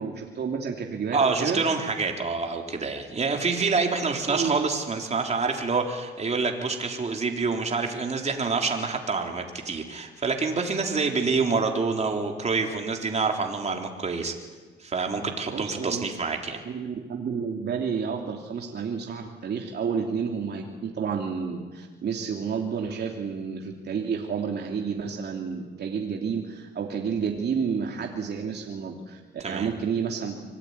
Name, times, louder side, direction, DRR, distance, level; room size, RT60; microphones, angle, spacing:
voice 1, 0.0-1.6 4.3-4.5 15.5-16.1 16.6-29.2 29.4-30.4, right 6 dB, 55° right, 1 dB, 3.1 m, -30 dB
voice 2, 1.1-14.3 14.8-16.6 29.4-29.7, right 4 dB, 35° right, 3 dB, 3.9 m, -27 dB
25.0 x 20.0 x 9.8 m, 1.3 s
cardioid pair, 90°, 20 cm